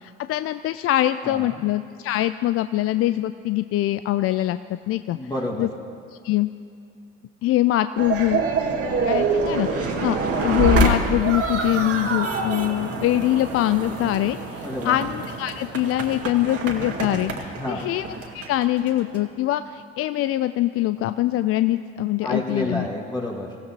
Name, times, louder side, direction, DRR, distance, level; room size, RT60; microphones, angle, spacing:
voice 1, 0.0-4.6 4.9-5.2 5.6-5.7 6.2-6.5 7.4-8.4 9.0-18.1 18.3-22.9, left 14 dB, 45° left, 12 dB, 0.4 m, -23 dB
voice 2, 1.2-1.6 5.1-5.7 14.6-15.0 17.6-17.9 22.2-23.6, left 1 dB, 15° left, -3 dB, 1.9 m, -30 dB
sound 1, 8.0-19.3, right 3 dB, 45° right, 2.0 m, -26 dB
23.5 x 15.0 x 2.9 m, 2.4 s
hypercardioid pair, 60°, 32 cm